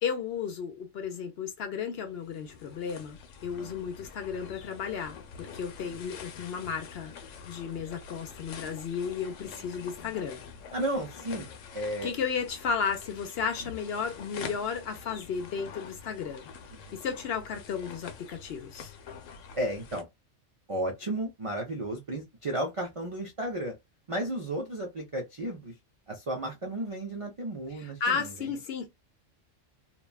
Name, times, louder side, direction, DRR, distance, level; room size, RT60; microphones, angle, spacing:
voice 1, 0.0-7.1 7.4-10.4 12.0-16.5 16.9-18.9 27.7-28.9, left 6 dB, 60° left, 0.8 m, -34 dB
sound 1, 2.1-20.0, left 6 dB, 85° left, 1.0 m, -46 dB
voice 2, 10.7-11.5 11.7-12.1 16.7-17.0 19.5-20.1 20.7-23.7 24.1-25.7 26.1-28.5, right 1 dB, 50° right, 0.4 m, -33 dB
2.8 x 2.2 x 2.3 m
omnidirectional pair, 1.3 m